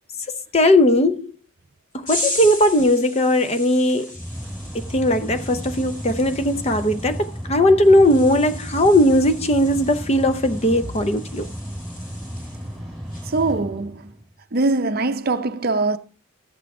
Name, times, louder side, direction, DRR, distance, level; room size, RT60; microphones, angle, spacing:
voice 1, 0.5-1.3 1.9-4.2 4.7-11.5, left 1 dB, 30° left, 0.6 m, -18 dB
sound 1, 2.1-12.8 13.1-13.4, left 1 dB, 80° left, 4.3 m, -36 dB
Mechanical fan, 3.8-14.3, equal, ahead, 4.2 m, -34 dB
voice 2, 13.3-14.1 14.5-16.0, right 3 dB, 45° right, 0.6 m, -22 dB
12.5 x 8.0 x 3.7 m
head